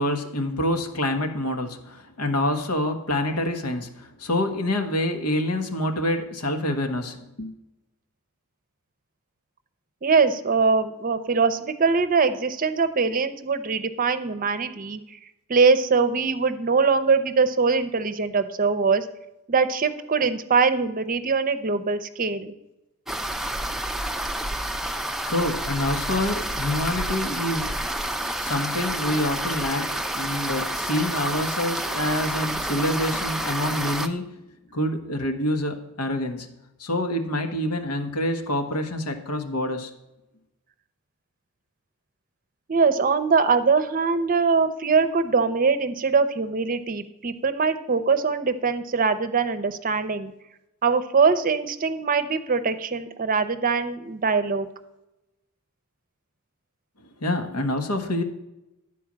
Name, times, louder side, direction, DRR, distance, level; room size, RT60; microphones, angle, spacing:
voice 1, 0.0-7.5 25.2-27.8 28.4-34.4 34.7-36.5 36.8-39.9 57.2-58.2, left 1 dB, 85° left, 5 dB, 1.3 m, -27 dB
voice 2, 10.0-15.0 15.5-19.0 19.5-22.5 42.7-50.3 50.8-54.7, right 5 dB, 40° right, 11 dB, 0.7 m, -22 dB
sound 1, 23.1-34.1, right 1 dB, ahead, 0.4 m, -29 dB
11.5 x 4.5 x 7.4 m, 0.93 s
head